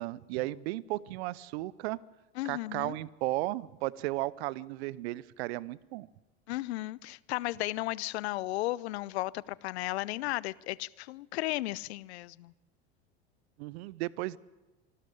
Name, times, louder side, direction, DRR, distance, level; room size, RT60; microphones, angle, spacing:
voice 1, 0.0-2.0 2.4-6.1 13.6-14.4, right 18 dB, 65° right, 0.7 m, -35 dB
voice 2, 2.4-3.0 6.5-12.5, left 18 dB, 70° left, 0.7 m, -34 dB
25.5 x 12.5 x 8.4 m
hypercardioid pair, 80°, 33 cm